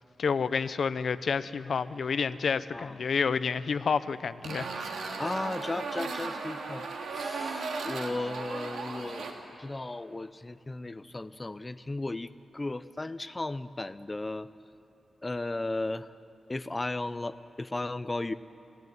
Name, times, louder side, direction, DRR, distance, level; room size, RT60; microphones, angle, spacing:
voice 1, 0.2-4.7, left 5 dB, 55° left, 14 dB, 0.7 m, -29 dB
sound 1, 4.4-9.3, right 4 dB, 85° right, 2.8 m, -36 dB
voice 2, 5.2-6.8 7.1-14.5 15.2-16.1 16.5-18.3, left 2 dB, 20° left, 12 dB, 0.5 m, -35 dB
28.5 x 17.5 x 9.5 m, 2.7 s
wide cardioid pair, 135°, 0 cm